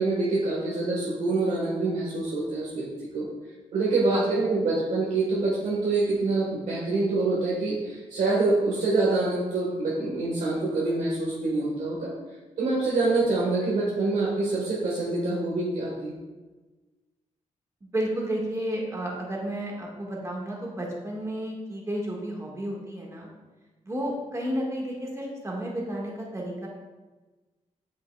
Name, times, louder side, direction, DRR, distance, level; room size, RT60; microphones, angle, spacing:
voice 1, 0.0-2.9 3.1-3.3 3.7-12.1 12.6-16.1, right 3 dB, 85° right, -5 dB, 1.3 m, -26 dB
voice 2, 17.8-23.3 23.8-26.7, right 1 dB, 25° right, -2 dB, 1.6 m, -32 dB
8.4 x 5.5 x 2.3 m, 1.2 s
cardioid pair, 110°, 13 cm